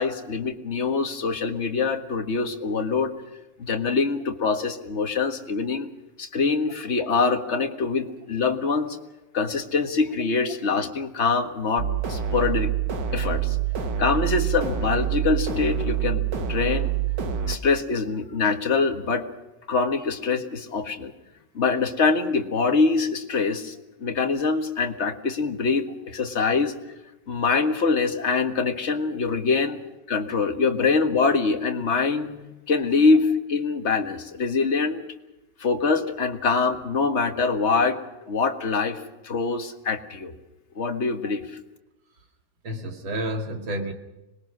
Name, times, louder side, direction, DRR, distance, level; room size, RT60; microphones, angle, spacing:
voice 1, 0.0-3.1 3.6-5.9 6.2-9.0 9.3-12.7 13.1-13.6 14.0-16.2 16.5-16.9 17.4-19.3 19.7-21.1 21.6-23.7 24.0-26.7 27.3-29.8 30.1-35.0 35.6-38.0 38.3-40.4 40.8-41.4, left 4 dB, 35° left, 5 dB, 1.9 m, -24 dB
sound 1, 11.8-17.6, right 9 dB, 65° right, 2.1 m, -26 dB
voice 2, 42.6-43.9, right 1 dB, 90° right, 4 dB, 3.0 m, -30 dB
26.0 x 21.0 x 6.3 m, 0.99 s
omnidirectional pair, 2.1 m